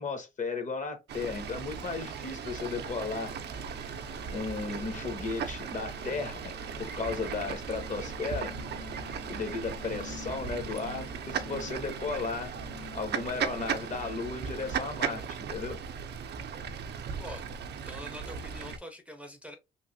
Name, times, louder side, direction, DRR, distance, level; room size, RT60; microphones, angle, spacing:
voice 1, 0.0-3.3 4.3-8.5 9.3-12.6 12.9-15.8, left 4 dB, 40° left, 0.8 m, -35 dB
Fowl / Bird, 1.1-18.8, right 7 dB, 60° right, 0.5 m, -37 dB
sound 1, 3.2-14.9, left 6 dB, 85° left, 1.4 m, -49 dB
voice 2, 17.0-19.6, equal, 5° right, 0.6 m, -45 dB
3.1 x 2.5 x 2.6 m
cardioid pair, 90°, 20 cm